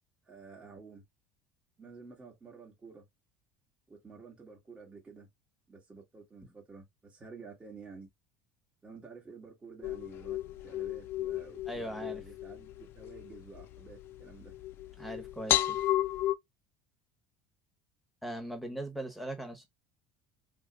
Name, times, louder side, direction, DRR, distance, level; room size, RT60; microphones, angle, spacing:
voice 1, 0.2-1.0 1.8-3.1 3.9-5.3 5.7-8.1 8.8-14.5, right 4 dB, 25° right, 1.1 m, -51 dB
sound 1, 9.8-16.4, left 13 dB, 50° left, 0.4 m, -34 dB
voice 2, 11.7-12.2 15.0-15.8 18.2-19.7, right 1 dB, ahead, 1.0 m, -39 dB
2.8 x 2.4 x 3.8 m
supercardioid pair, 105°, 5 cm